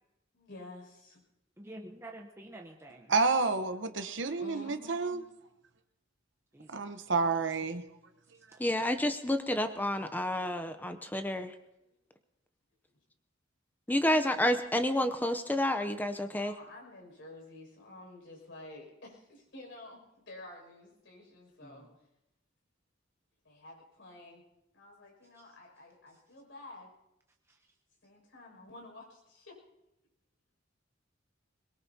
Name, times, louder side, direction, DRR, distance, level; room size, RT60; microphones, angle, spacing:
voice 1, 0.3-1.2 4.4-5.2 11.9-12.0 12.9-13.0 16.3-21.9 23.4-24.4 24.7-26.9 28.0-29.6, left 2 dB, 70° left, -1 dB, 6.2 m, -50 dB
voice 2, 1.6-3.1 6.5-6.8 8.5-8.6 21.6-21.9, right 1 dB, 15° right, 1 dB, 0.9 m, -48 dB
voice 3, 3.1-5.2 6.7-7.8, right 4 dB, 70° right, 9 dB, 1.0 m, -29 dB
voice 4, 8.6-11.5 13.9-16.5, left 1 dB, 10° left, 9 dB, 0.6 m, -29 dB
22.0 x 21.5 x 2.8 m, 0.88 s
head